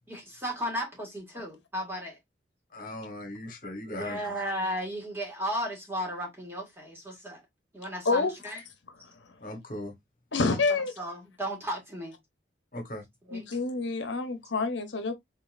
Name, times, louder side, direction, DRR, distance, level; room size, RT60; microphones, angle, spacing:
voice 1, 0.1-2.2 3.9-7.4 7.7-8.6 10.5-12.2 13.3-13.4, equal, 15° right, 1.9 m, -35 dB
voice 2, 2.7-4.3 9.4-9.9 12.7-13.0, left 1 dB, 45° left, 1.4 m, -38 dB
voice 3, 10.3-10.9 13.3-15.1, left 3 dB, 80° left, 0.9 m, -27 dB
4.0 x 3.9 x 2.5 m
head